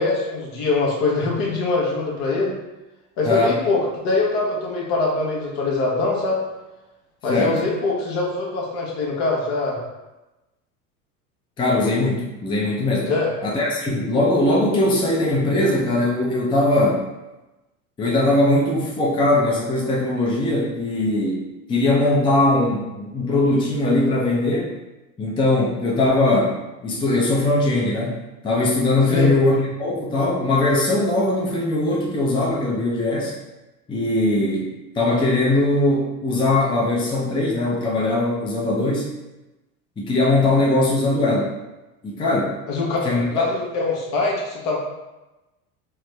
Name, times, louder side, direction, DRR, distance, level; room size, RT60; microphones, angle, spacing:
voice 1, 0.0-2.5 3.2-6.4 7.2-9.8 13.0-13.3 29.1-29.3 42.7-44.8, left 3 dB, 55° left, -2 dB, 1.1 m, -23 dB
voice 2, 3.2-3.6 7.3-7.6 11.6-13.1 13.4-17.0 18.0-21.4 21.7-24.7 25.2-33.3 33.9-34.7 34.9-39.1 40.0-41.5 42.0-42.6 43.0-43.4, left 2 dB, 10° left, -4 dB, 0.5 m, -20 dB
3.5 x 2.0 x 3.2 m, 1.0 s
hypercardioid pair, 85°, 44 cm